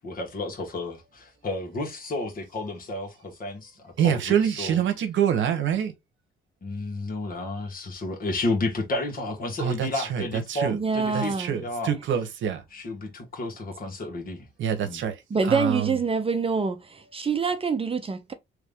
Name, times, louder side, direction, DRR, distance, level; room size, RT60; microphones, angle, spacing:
voice 1, 0.0-4.8 6.6-11.9 12.7-14.5 14.8-15.0, left 2 dB, 45° left, 1.5 m, -32 dB
voice 2, 4.0-5.9 9.6-10.8 11.1-12.6 14.6-15.2 15.5-16.0, right 9 dB, 75° right, 0.9 m, -26 dB
voice 3, 10.7-11.5 15.3-18.3, right 5 dB, 30° right, 0.7 m, -26 dB
3.2 x 2.5 x 3.4 m
cardioid pair, 90°, 20 cm